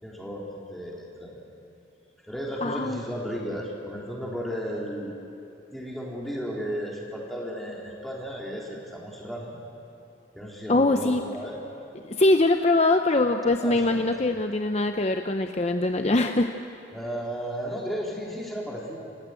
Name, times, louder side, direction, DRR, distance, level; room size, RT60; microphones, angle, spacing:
voice 1, 0.0-1.4 2.3-5.2 5.7-9.6 10.3-11.6 13.6-14.3 16.9-19.0, equal, ahead, -4 dB, 3.8 m, -34 dB
voice 2, 2.6-3.0 10.7-11.2 12.0-16.5, left 2 dB, 35° left, 6 dB, 0.6 m, -22 dB
28.0 x 15.0 x 9.2 m, 2.7 s
head